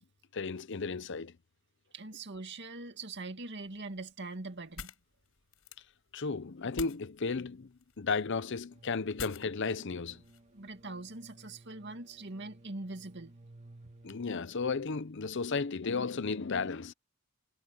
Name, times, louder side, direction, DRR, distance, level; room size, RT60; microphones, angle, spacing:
voice 1, 0.3-1.3 6.1-10.2 14.0-16.9, left 4 dB, 60° left, 0.7 m, -34 dB
voice 2, 1.9-4.9 10.5-13.3, right 2 dB, 55° right, 2.3 m, -42 dB
sound 1, 3.5-11.0, left 5 dB, 85° left, 5.4 m, -50 dB
sound 2, 8.7-14.7, right 1 dB, 35° right, 2.3 m, -57 dB
head